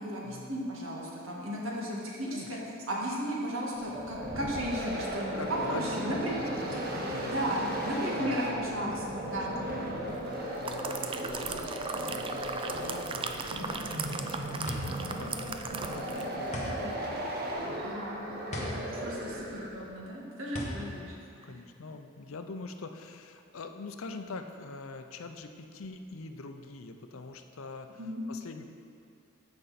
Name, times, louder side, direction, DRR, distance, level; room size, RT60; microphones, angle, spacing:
voice 1, 0.0-2.6 2.9-6.6 7.3-9.9 11.9-12.1 15.1-15.5 16.6-16.9 17.8-21.2 21.4-21.5 28.0-28.2, equal, 80° right, -3 dB, 1.8 m, -35 dB
sound 1, 3.8-19.9, right 1 dB, 50° right, 1.3 m, -36 dB
voice 2, 5.3-7.4 8.2-17.2 18.5-18.9 20.7-21.1 21.4-28.0 28.3-28.6, left 3 dB, 90° left, 7 dB, 0.6 m, -44 dB
sound 2, 10.3-16.4 16.7-16.9, right 5 dB, 25° right, 0.4 m, -38 dB
sound 3, 14.7-22.2, left 1 dB, 35° left, 1.4 m, -41 dB
13.5 x 5.3 x 4.2 m, 2.4 s
head